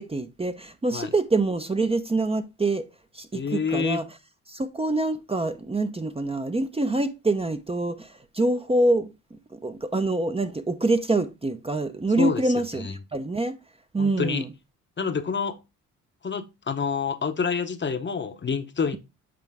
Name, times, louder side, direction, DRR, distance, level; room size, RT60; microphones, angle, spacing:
voice 1, 0.0-2.9 3.1-4.0 4.5-13.6 13.9-14.5, right 2 dB, 15° right, 0.7 m, -26 dB
voice 2, 3.3-4.0 12.2-12.9 14.0-14.4 15.0-15.6 16.2-19.0, left 5 dB, 35° left, 0.8 m, -28 dB
7.6 x 4.5 x 3.5 m
supercardioid pair, 65°, 33 cm